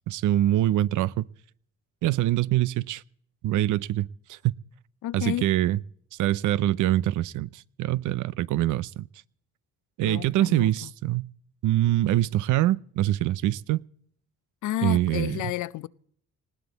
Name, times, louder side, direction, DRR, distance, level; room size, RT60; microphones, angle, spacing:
voice 1, 0.1-1.3 2.0-3.0 3.4-4.5 5.1-5.8 6.1-9.1 10.0-11.3 11.6-13.8 14.8-15.4, right 14 dB, 80° right, 0.6 m, -24 dB
voice 2, 5.0-5.5 10.0-10.9 14.6-15.9, left 14 dB, 75° left, 0.6 m, -31 dB
19.5 x 16.5 x 4.1 m
cardioid pair, 90°, 30 cm